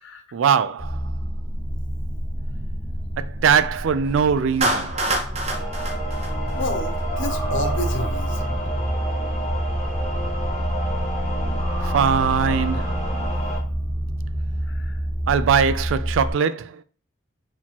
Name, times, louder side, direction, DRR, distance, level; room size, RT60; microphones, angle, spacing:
voice 1, 0.3-1.0 3.2-5.0 11.8-13.0 15.3-16.8, right 7 dB, 80° right, 0.4 m, -21 dB
sound 1, 0.8-16.3, equal, 5° right, 2.0 m, -27 dB
Clapping, 4.6-7.0, right 2 dB, 35° right, 0.7 m, -26 dB
sound 2, 5.5-13.6, right 1 dB, 35° left, 1.4 m, -31 dB
voice 2, 6.6-8.5 14.6-15.0, left 2 dB, 70° left, 0.7 m, -30 dB
4.7 x 3.6 x 2.9 m
head